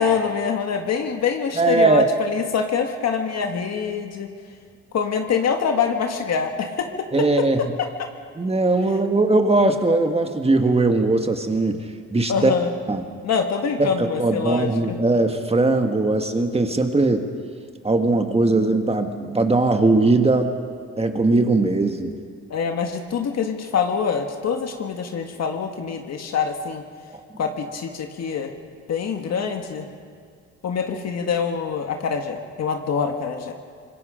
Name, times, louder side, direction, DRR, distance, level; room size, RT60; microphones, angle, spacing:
voice 1, 0.0-4.3 4.9-7.9 12.3-12.7 13.2-15.0 22.5-26.8 27.4-28.5 28.9-29.9 30.6-33.5, left 6 dB, 60° left, 4 dB, 1.7 m, -25 dB
voice 2, 1.5-2.1 7.1-7.7 8.4-11.8 12.1-12.5 12.9-13.0 13.8-13.9 14.2-17.2 17.8-20.5 21.0-22.1 27.1-27.2, right 2 dB, 20° right, 5 dB, 1.7 m, -19 dB
25.5 x 21.0 x 5.1 m, 2.1 s
cardioid pair, 90°, 30 cm